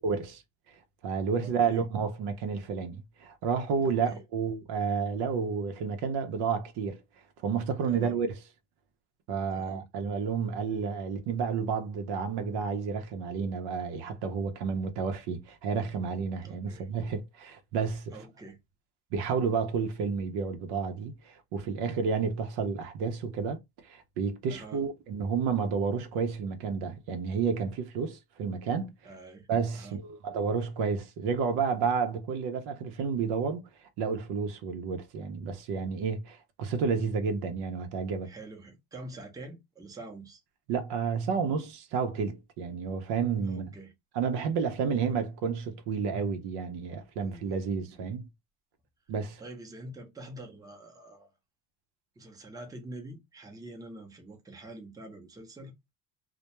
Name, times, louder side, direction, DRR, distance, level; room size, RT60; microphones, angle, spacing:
voice 1, 0.0-0.4 1.0-7.0 7.4-8.3 9.3-18.2 19.1-28.9 29.5-33.6 34.0-38.3 40.7-43.7 44.1-48.3 49.1-49.4, right 6 dB, 70° right, 0.7 m, -31 dB
voice 2, 1.4-1.8 3.8-4.2 7.9-8.2 9.5-9.9 16.4-16.9 18.1-18.6 24.5-24.8 29.0-29.5 29.7-30.0 38.2-40.4 43.4-43.9 44.8-45.2 47.2-48.0 49.4-51.3 52.2-55.7, right 2 dB, 10° right, 0.6 m, -46 dB
2.2 x 2.2 x 2.9 m
cardioid pair, 120°, 41 cm